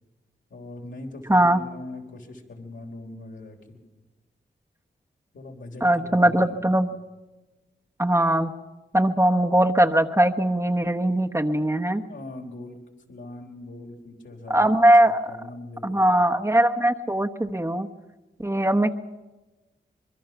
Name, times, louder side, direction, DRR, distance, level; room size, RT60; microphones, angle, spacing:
voice 1, 0.5-3.8 5.3-6.7 12.1-12.8 13.1-14.7 15.0-16.2, left 2 dB, 75° left, 0 dB, 3.5 m, -41 dB
voice 2, 5.8-6.9 8.0-8.5 8.9-12.0 14.5-15.3 15.8-17.9 18.4-19.0, right 1 dB, 15° right, 4 dB, 1.1 m, -20 dB
25.0 x 22.0 x 5.9 m, 1.1 s
cardioid pair, 50°, 20 cm